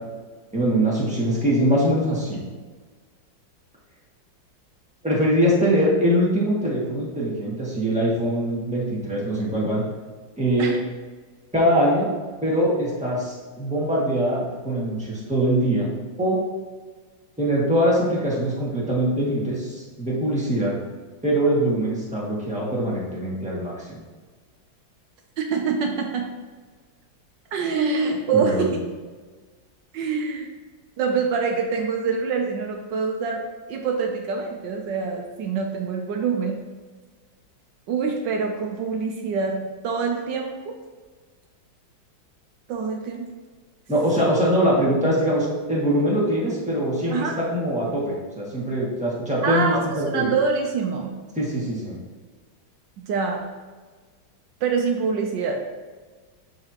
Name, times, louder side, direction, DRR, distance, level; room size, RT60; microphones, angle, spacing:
voice 1, 0.5-2.4 5.0-9.8 10.4-10.7 11.5-12.1 12.4-15.9 16.2-16.4 17.4-20.7 21.2-24.0 28.3-28.6 43.9-50.3 51.4-52.0, equal, 5° right, -7 dB, 1.7 m, -22 dB
voice 2, 25.4-26.3 27.5-28.7 29.9-30.5 31.0-33.4 33.7-36.6 37.9-39.6 39.8-40.8 42.7-43.2 47.1-47.4 49.4-51.2 53.1-53.5 54.6-55.6, right 5 dB, 70° right, 2 dB, 1.3 m, -25 dB
11.5 x 3.9 x 2.9 m, 1.4 s
omnidirectional pair, 2.1 m